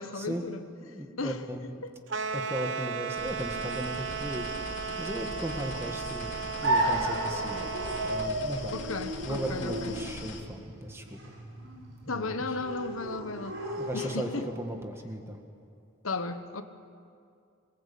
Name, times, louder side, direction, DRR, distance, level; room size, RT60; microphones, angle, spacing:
voice 1, 0.0-0.6 1.2-1.4 1.8-1.9 8.7-10.0 12.0-13.6 13.9-14.5 16.0-16.6, left 3 dB, 90° left, 1.3 m, -35 dB
voice 2, 0.8-1.8 2.3-7.7 8.0-8.7 9.2-11.2 12.1-12.4 13.8-14.3 14.6-15.4, equal, 10° right, 1.9 m, -37 dB
sound 1, 2.1-8.3, right 6 dB, 65° right, 1.0 m, -35 dB
sound 2, 3.1-10.4, left 2 dB, 60° left, 2.9 m, -42 dB
sound 3, 6.6-14.6, right 1 dB, 80° right, 5.3 m, -33 dB
26.5 x 20.0 x 8.7 m
head